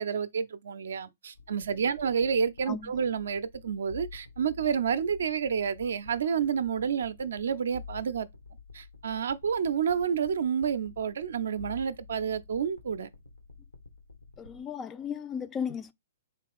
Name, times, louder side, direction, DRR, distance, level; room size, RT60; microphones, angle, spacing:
voice 1, 0.0-8.3 8.7-13.1, right 7 dB, 60° right, 0.4 m, -29 dB
sound 1, 1.3-14.6, left 5 dB, 75° left, 0.7 m, -50 dB
voice 2, 14.4-15.9, left 7 dB, 20° left, 0.3 m, -35 dB
4.1 x 2.9 x 3.4 m
figure-of-eight pair, 115°, 0 cm